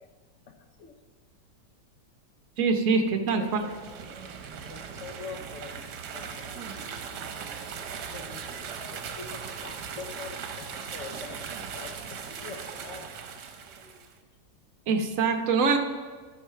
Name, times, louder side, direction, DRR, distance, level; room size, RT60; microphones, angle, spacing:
voice 1, 2.6-3.7 14.9-15.8, right 4 dB, 55° right, 5 dB, 1.1 m, -24 dB
sound 1, 3.3-14.1, right 6 dB, 75° right, 1.3 m, -39 dB
voice 2, 3.4-3.8 4.7-5.8 6.1-6.6 7.6-7.7 8.1-13.2, left 4 dB, 55° left, 5 dB, 1.0 m, -44 dB
12.0 x 4.9 x 5.6 m, 1.5 s
omnidirectional pair, 1.9 m